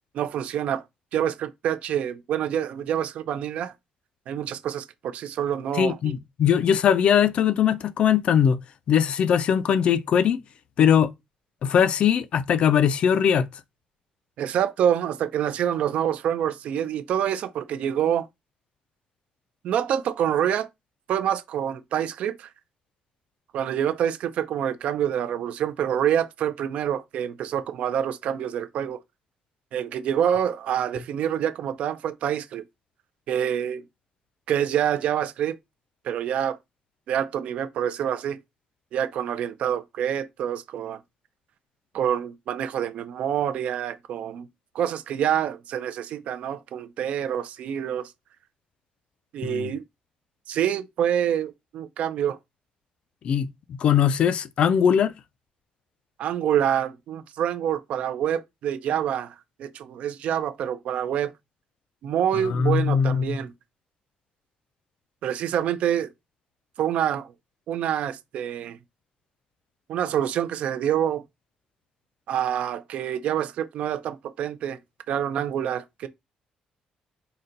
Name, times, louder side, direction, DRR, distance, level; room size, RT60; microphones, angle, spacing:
voice 1, 0.1-0.8 1.1-3.7 4.3-6.1 14.4-18.3 19.6-20.7 21.1-22.5 23.5-29.0 29.7-32.6 33.3-33.8 34.5-35.6 36.0-36.6 37.1-38.4 38.9-41.0 41.9-44.5 44.7-48.1 49.3-49.8 50.5-52.4 56.2-61.3 62.0-63.5 65.2-66.1 66.8-67.3 67.7-68.8 69.9-71.2 72.3-74.8 75.1-76.1, right 9 dB, 60° right, 0.4 m, -26 dB
voice 2, 5.8-8.6 8.9-10.4 10.8-11.1 11.6-13.5 49.4-49.7 53.2-53.5 53.8-55.1 62.5-63.4, left 8 dB, 45° left, 0.3 m, -20 dB
3.9 x 2.2 x 3.8 m
cardioid pair, 160°, 2 cm